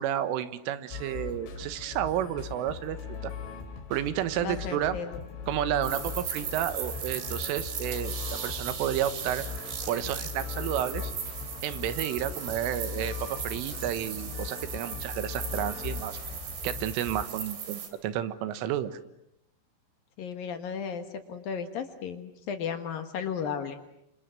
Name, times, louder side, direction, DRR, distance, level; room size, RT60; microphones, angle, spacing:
voice 1, 0.0-3.0 3.2-3.3 3.9-5.0 5.5-9.5 9.9-11.1 11.6-16.2 16.6-19.0, right 11 dB, 85° right, 12 dB, 3.8 m, -31 dB
sound 1, 0.9-17.2, left 7 dB, 80° left, 5.7 m, -39 dB
voice 2, 4.4-5.2 20.2-23.8, left 7 dB, 60° left, 8 dB, 2.6 m, -35 dB
sound 2, 5.4-10.6, right 3 dB, 30° right, 4.2 m, -56 dB
sound 3, 5.8-17.9, right 8 dB, 60° right, 4.7 m, -38 dB
27.5 x 27.0 x 7.6 m, 0.81 s
omnidirectional pair, 5.6 m